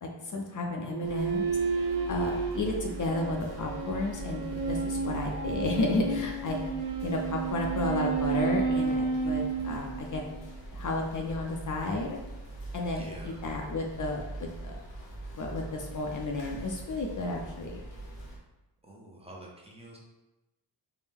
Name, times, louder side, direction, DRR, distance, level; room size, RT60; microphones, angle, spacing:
voice 1, 0.0-1.5 2.1-6.7 7.0-10.2 10.7-12.2 12.7-14.8 15.4-17.8, left 2 dB, 45° left, 0 dB, 0.5 m, -32 dB
sound 1, 0.9-10.5, right 4 dB, 70° right, 0.7 m, -32 dB
sound 2, 1.0-18.4, right 2 dB, 90° left, 1.1 m, -42 dB
voice 2, 12.9-13.4 18.8-20.0, right 1 dB, 15° right, -3 dB, 0.6 m, -47 dB
4.3 x 2.1 x 3.5 m, 1.0 s
wide cardioid pair, 125°, 43 cm